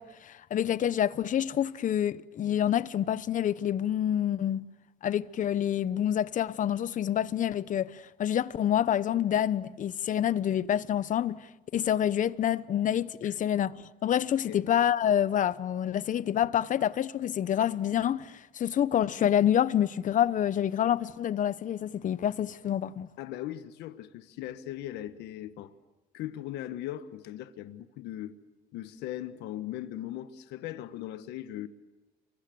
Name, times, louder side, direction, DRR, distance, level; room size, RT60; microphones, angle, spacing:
voice 1, 0.0-4.6 5.0-11.3 11.7-23.1, left 10 dB, 50° left, 1.0 m, -27 dB
voice 2, 23.2-25.7 26.1-28.3 28.7-31.7, left 13 dB, 85° left, 1.3 m, -39 dB
29.0 x 24.5 x 7.9 m
cardioid pair, 110°, 17 cm